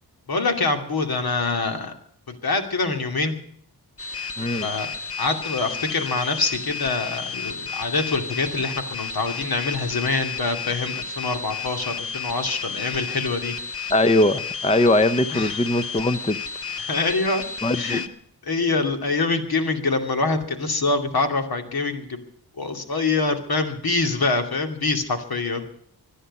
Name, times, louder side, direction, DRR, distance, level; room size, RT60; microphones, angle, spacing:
voice 1, 0.3-1.9 2.3-3.4 4.2-4.3 4.6-4.9 5.2-13.5 15.3-15.6 16.8-17.4 17.7-18.0 18.5-22.2 22.6-25.6, left 3 dB, 65° left, 6 dB, 2.6 m, -25 dB
sound 1, 4.0-18.1, left 5 dB, 35° left, 1.1 m, -32 dB
voice 2, 13.9-16.4 17.6-18.0, left 1 dB, 15° left, 13 dB, 0.7 m, -21 dB
25.0 x 10.0 x 5.4 m, 0.62 s
wide cardioid pair, 125°, 39 cm